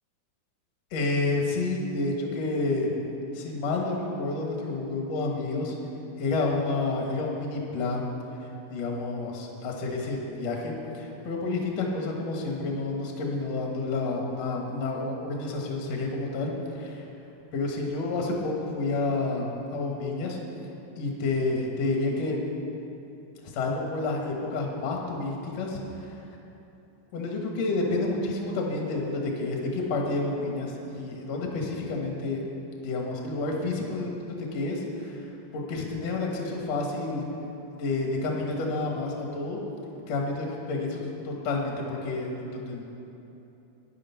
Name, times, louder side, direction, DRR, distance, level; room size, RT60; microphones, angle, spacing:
voice 1, 0.9-2.9 3.3-5.7 6.2-8.1 8.7-17.0 17.5-20.4 21.0-22.4 23.4-26.1 27.1-32.4 32.8-35.2 35.5-37.2 37.8-39.6 40.1-42.8, left 3 dB, 55° left, 0 dB, 2.2 m, -29 dB
10.5 x 10.0 x 5.7 m, 3.0 s
omnidirectional pair, 4.3 m